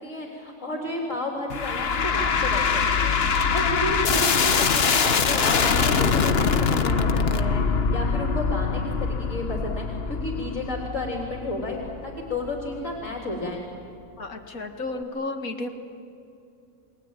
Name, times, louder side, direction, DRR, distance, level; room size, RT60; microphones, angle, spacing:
voice 1, 0.0-13.6, left 2 dB, 65° left, -1 dB, 4.1 m, -32 dB
sound 1, 1.5-12.8, left 5 dB, 50° left, 1.2 m, -23 dB
voice 2, 14.2-15.7, left 2 dB, 85° left, 5 dB, 2.4 m, -32 dB
29.5 x 21.5 x 9.1 m, 2.6 s
omnidirectional pair, 1.4 m